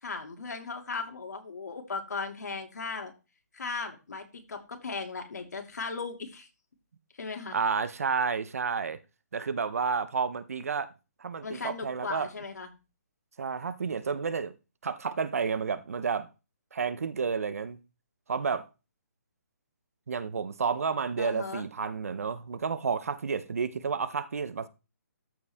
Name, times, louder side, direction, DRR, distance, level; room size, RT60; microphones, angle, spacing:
voice 1, 0.0-3.1 3.5-6.5 7.2-7.6 11.4-12.7 21.2-21.7, left 4 dB, 80° left, 2.5 m, -37 dB
voice 2, 7.5-9.0 9.3-10.9 11.2-12.3 13.4-14.5 14.8-16.3 16.7-17.8 18.3-18.7 20.1-24.7, right 5 dB, 60° right, 0.8 m, -30 dB
13.5 x 4.8 x 3.5 m
hypercardioid pair, 175°, 9 cm